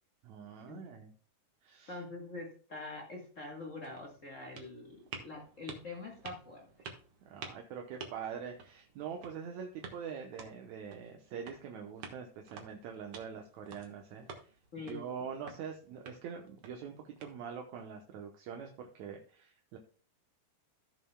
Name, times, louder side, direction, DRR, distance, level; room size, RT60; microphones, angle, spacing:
voice 1, 0.2-1.1 1.6-2.0 7.3-14.5 14.9-19.8, right 7 dB, 70° right, 3 dB, 2.0 m, -44 dB
voice 2, 1.9-6.7 14.7-15.0, left 3 dB, 55° left, 0 dB, 0.8 m, -45 dB
sound 1, 3.3-17.8, right 5 dB, 55° right, 1.8 m, -52 dB
15.5 x 6.7 x 2.2 m, 0.41 s
omnidirectional pair, 3.9 m